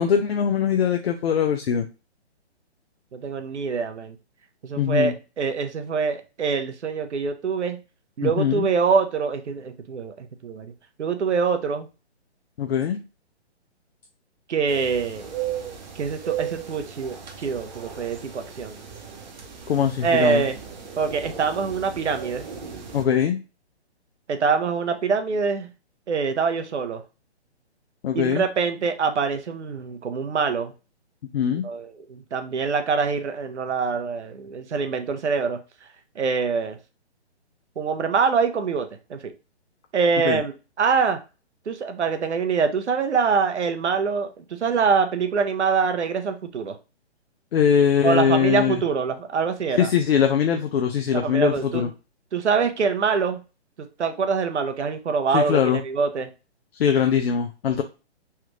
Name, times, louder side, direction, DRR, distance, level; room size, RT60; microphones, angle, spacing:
voice 1, 0.0-1.9 4.8-5.1 8.2-8.7 12.6-13.0 19.7-20.4 22.9-23.4 28.0-28.4 31.3-31.7 40.3-40.4 47.5-48.8 49.8-51.9 55.3-55.8 56.7-57.8, left 8 dB, 65° left, 5 dB, 0.5 m, -21 dB
voice 2, 3.1-4.2 4.6-7.8 8.2-10.7 11.0-11.9 14.5-15.3 15.9-18.8 20.0-20.6 21.0-22.5 24.3-25.7 26.1-27.0 28.1-30.7 31.6-35.6 36.1-36.8 37.8-39.3 39.9-41.2 41.7-46.8 48.0-49.9 51.1-51.9 52.3-53.4 53.8-56.3, right 5 dB, 85° right, 7 dB, 0.8 m, -24 dB
sound 1, 14.7-23.0, right 8 dB, 40° right, 0.8 m, -36 dB
3.3 x 2.4 x 3.0 m, 0.31 s
hypercardioid pair, 150°, 34 cm